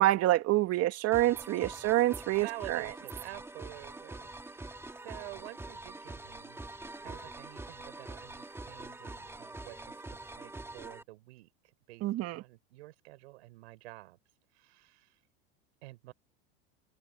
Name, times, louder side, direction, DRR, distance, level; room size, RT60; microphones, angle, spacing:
voice 1, 0.0-2.9 12.0-12.4, right 16 dB, 45° right, 2.1 m, -27 dB
sound 1, 1.1-11.0, right 2 dB, 5° right, 1.8 m, -45 dB
voice 2, 2.3-6.6 7.0-11.5 11.9-12.1 12.3-14.2 14.5-15.2 15.8-16.1, right 20 dB, 75° right, 5.1 m, -49 dB
hypercardioid pair, 105°, 34 cm